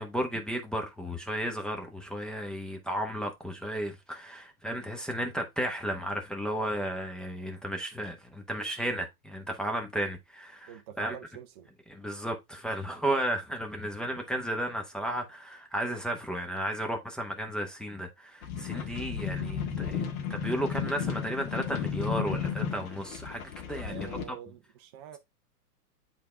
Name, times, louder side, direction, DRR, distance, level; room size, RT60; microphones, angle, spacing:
voice 1, 0.0-10.7 11.0-11.2 11.9-24.4, right 1 dB, ahead, 0.8 m, -34 dB
voice 2, 10.7-11.7 23.9-25.2, right 10 dB, 20° right, 0.3 m, -45 dB
sound 1, 18.4-24.2, left 7 dB, 65° left, 1.8 m, -34 dB
8.4 x 3.6 x 3.3 m
hypercardioid pair, 125°, 46 cm